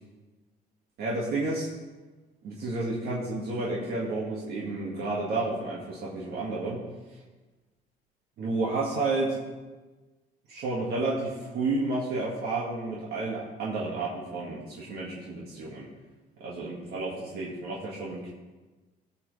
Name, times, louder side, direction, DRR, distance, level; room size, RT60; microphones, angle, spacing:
voice 1, 1.0-1.7 2.4-6.8 8.4-9.4 10.5-15.9 16.4-18.3, right 2 dB, 70° right, -5 dB, 2.0 m, -31 dB
16.0 x 6.0 x 3.3 m, 1.2 s
cardioid pair, 110°, 17 cm